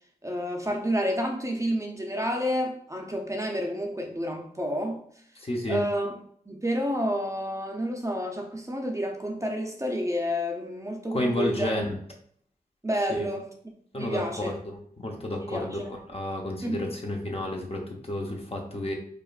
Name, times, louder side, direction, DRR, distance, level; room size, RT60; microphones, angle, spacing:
voice 1, 0.2-5.0 5.7-6.2 6.5-11.7 12.8-13.5 13.9-14.5 15.4-15.9 16.6-16.9, equal, 20° right, 2 dB, 0.7 m, -29 dB
voice 2, 5.4-5.8 11.1-11.9 13.2-13.3 13.9-15.8 16.1-18.9, left 1 dB, 40° left, 0 dB, 0.8 m, -31 dB
4.9 x 2.5 x 2.5 m, 0.62 s
cardioid pair, 55°, 16 cm